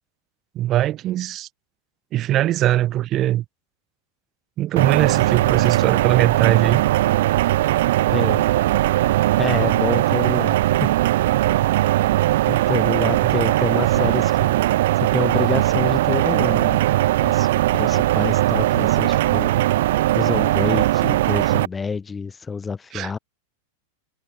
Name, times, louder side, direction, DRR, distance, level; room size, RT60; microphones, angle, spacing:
voice 1, 0.5-1.5 2.1-3.4 4.6-6.8 13.2-13.3 22.9-23.1, right 13 dB, 35° right, 1.2 m, -21 dB
sound 1, 4.8-21.7, right 15 dB, 55° right, 0.6 m, -19 dB
voice 2, 8.1-8.4 9.4-11.0 12.5-14.6 15.0-16.8 17.2-19.5 20.1-23.2, left 5 dB, 15° left, 0.7 m, -27 dB
figure-of-eight pair, 90°, 0 cm